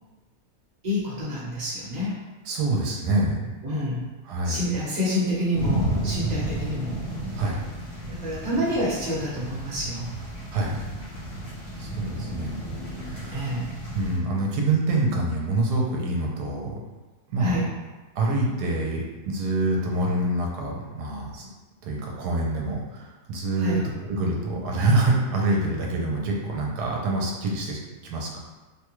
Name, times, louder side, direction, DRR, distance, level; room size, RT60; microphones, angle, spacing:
voice 1, 0.8-2.2 3.6-4.0 4.4-7.0 8.1-10.1 13.3-13.7 17.4-17.7 23.6-23.8, equal, 30° right, -8 dB, 0.9 m, -28 dB
voice 2, 2.5-3.5 4.2-4.7 7.4-7.7 10.5-10.8 11.8-12.7 13.0-13.5 13.9-16.8 17.3-17.6 18.2-21.5 21.8-28.4, right 2 dB, 80° right, -1 dB, 1.2 m, -26 dB
sound 1, 5.5-14.2, right 1 dB, 35° left, 0.6 m, -32 dB
3.5 x 2.2 x 3.0 m, 1.2 s
omnidirectional pair, 1.7 m